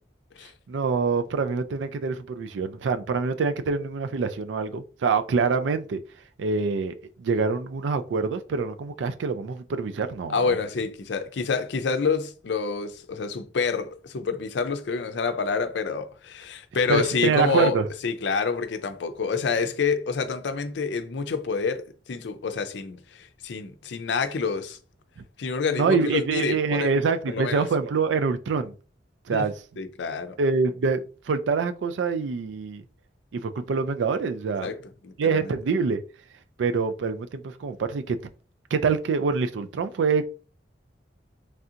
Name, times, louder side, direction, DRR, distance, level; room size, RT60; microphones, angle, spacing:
voice 1, 0.7-6.0 6.4-10.6 16.9-17.9 25.2-25.3 25.7-28.7 29.3-29.8 30.4-31.0 31.3-32.8 33.3-34.7 35.2-36.0 36.6-38.2 38.7-40.3, right 5 dB, 90° right, 0.4 m, -25 dB
voice 2, 10.3-17.8 18.0-24.8 25.4-26.9 27.3-27.7 29.3-29.5 29.8-30.4 34.6-34.8 35.0-35.4, left 5 dB, 75° left, 0.5 m, -28 dB
3.3 x 2.5 x 2.7 m
head